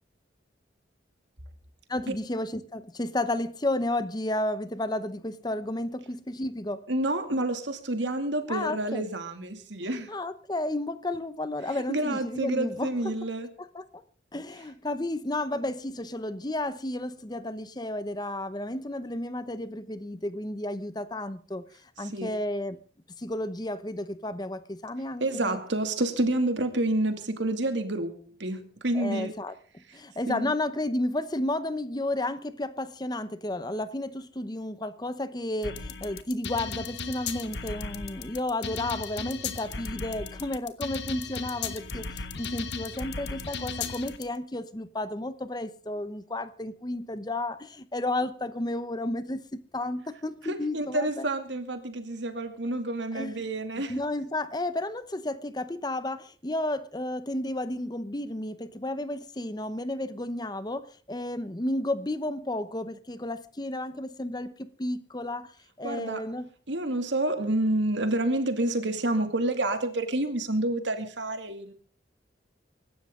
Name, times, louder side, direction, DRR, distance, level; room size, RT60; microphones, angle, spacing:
voice 1, 1.9-6.8 8.5-9.1 10.1-13.1 13.7-13.8 14.3-21.7 22.0-22.8 23.2-25.6 28.9-51.2 53.1-53.4 53.9-65.5 65.8-66.5, left 1 dB, 20° left, 0.8 m, -32 dB
voice 2, 6.9-10.1 11.9-13.5 22.0-22.3 25.2-28.1 28.4-29.3 30.3-30.5 50.4-54.0 65.8-66.3 66.7-71.7, right 1 dB, 70° right, 2.4 m, -29 dB
sound 1, 35.6-44.2, left 5 dB, 65° left, 1.4 m, -36 dB
24.5 x 12.5 x 3.8 m
head